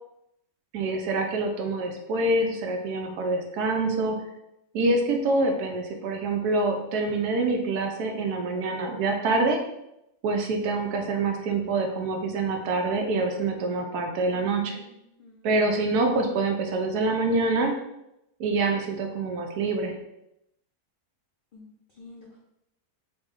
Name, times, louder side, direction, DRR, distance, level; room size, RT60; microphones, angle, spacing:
voice 1, 0.7-4.2 4.7-9.6 10.2-14.8 15.4-17.7 18.4-19.9, right 2 dB, 80° right, 3 dB, 1.1 m, -26 dB
voice 2, 14.3-15.5 21.5-22.4, left 1 dB, 80° left, -3 dB, 0.4 m, -50 dB
4.1 x 2.1 x 3.4 m, 0.84 s
omnidirectional pair, 1.7 m